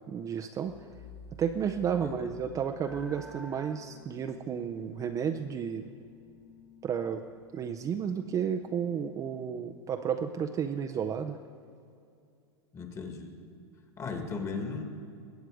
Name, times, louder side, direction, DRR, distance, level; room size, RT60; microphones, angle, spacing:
voice 1, 0.1-0.7 1.4-5.9 6.8-7.2 7.5-11.4, right 7 dB, 25° right, 6 dB, 0.5 m, -32 dB
sound 1, 0.7-3.5, left 2 dB, 45° left, 1.3 m, -51 dB
voice 2, 2.0-2.3 12.7-13.4 14.0-14.8, left 4 dB, 20° left, 5 dB, 1.5 m, -37 dB
sound 2, 2.8-9.2, left 3 dB, ahead, 1.2 m, -53 dB
21.5 x 8.1 x 4.8 m, 2.4 s
hypercardioid pair, 130°, 14 cm